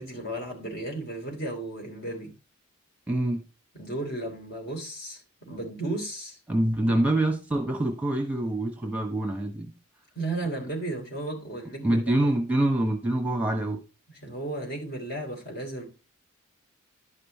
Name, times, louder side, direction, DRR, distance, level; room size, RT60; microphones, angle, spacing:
voice 1, 0.0-2.3 3.7-6.4 10.1-12.0 14.2-15.8, right 2 dB, 50° left, 3.6 m, -34 dB
voice 2, 3.1-3.4 6.5-9.7 11.8-13.8, right 1 dB, 5° right, 1.2 m, -25 dB
11.5 x 5.5 x 4.2 m
head